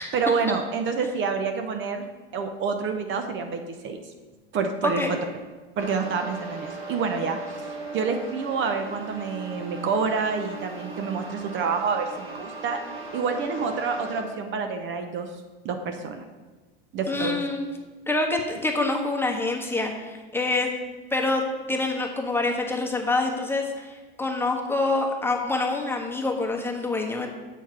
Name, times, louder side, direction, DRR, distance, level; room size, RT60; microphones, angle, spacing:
voice 1, 0.0-2.1 2.3-4.0 4.5-5.2 5.8-15.3 15.6-16.2 16.9-17.4, right 5 dB, 40° right, 6 dB, 0.8 m, -28 dB
sound 1, 5.8-14.2, right 3 dB, 80° right, 1.6 m, -38 dB
voice 2, 17.1-17.7 18.1-20.7 21.1-21.4 21.7-27.3, left 2 dB, 5° left, 1 dB, 1.3 m, -26 dB
8.1 x 4.5 x 5.7 m, 1.3 s
hypercardioid pair, 90°, 30 cm